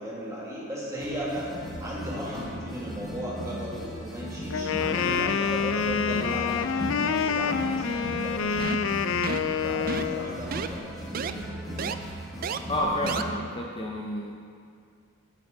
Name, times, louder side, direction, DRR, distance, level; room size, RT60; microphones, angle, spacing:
voice 1, 0.0-1.5 1.8-9.2 9.6-11.8, equal, 15° right, -6 dB, 2.1 m, -36 dB
sound 1, 1.0-13.2, equal, ahead, 1.6 m, -37 dB
Wind instrument woodwind instrument, 4.5-10.4, left 6 dB, 70° left, 0.4 m, -27 dB
sound 2, 8.6-8.9 9.2-9.5 9.9-10.2 10.5-10.7 11.1-11.3 11.8-11.9 12.4-12.6 13.1-13.2, right 6 dB, 45° right, 0.3 m, -31 dB
voice 2, 12.7-14.3, left 1 dB, 25° left, -1 dB, 0.6 m, -30 dB
11.0 x 8.0 x 3.9 m, 2.3 s
head